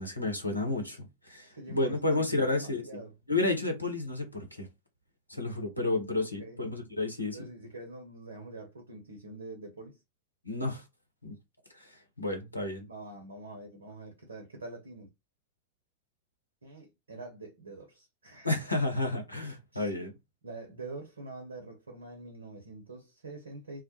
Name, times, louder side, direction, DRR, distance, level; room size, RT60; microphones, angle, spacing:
voice 1, 0.0-2.8 3.3-4.7 5.3-7.5 10.4-10.8 11.2-11.3 11.7-12.9 18.4-20.1, left 2 dB, 85° left, 0.7 m, -31 dB
voice 2, 1.5-3.1 6.4-6.6 7.3-10.0 12.9-15.1 16.6-18.6 19.7-19.9 20.4-23.8, right 2 dB, 75° right, 0.7 m, -45 dB
2.2 x 2.0 x 2.8 m
figure-of-eight pair, 90°, 0 cm